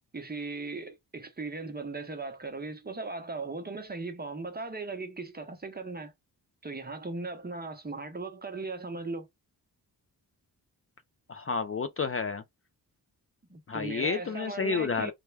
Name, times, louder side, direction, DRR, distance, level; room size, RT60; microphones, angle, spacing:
voice 1, 0.1-6.1 6.6-9.3 13.5-15.1, right 3 dB, 25° right, 0.7 m, -38 dB
voice 2, 11.3-12.4 13.7-15.1, left 5 dB, 35° left, 0.4 m, -30 dB
3.4 x 2.2 x 3.2 m
wide cardioid pair, 115°, 40 cm